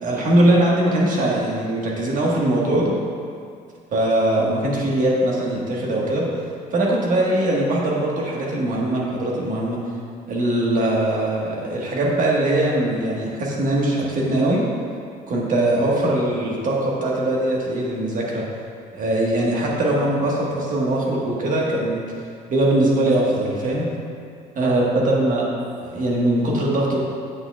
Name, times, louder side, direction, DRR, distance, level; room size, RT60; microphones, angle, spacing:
voice 1, 0.0-2.9 3.9-6.3 6.7-9.8 10.3-14.6 15.3-18.4 18.9-22.0 22.5-23.9 24.5-25.5 25.8-27.0, right 1 dB, 50° right, -3 dB, 1.4 m, -21 dB
8.6 x 6.2 x 2.3 m, 2.3 s
cardioid pair, 110°, 17 cm